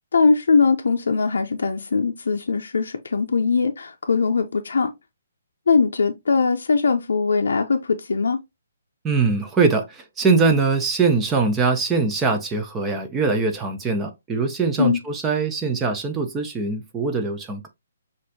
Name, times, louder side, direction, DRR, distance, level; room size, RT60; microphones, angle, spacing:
voice 1, 0.1-4.9 5.7-8.4 14.8-15.0, left 4 dB, 70° left, 0.5 m, -21 dB
voice 2, 9.0-17.7, right 4 dB, 10° right, 0.4 m, -22 dB
6.2 x 2.5 x 2.6 m
hypercardioid pair, 180°, 0 cm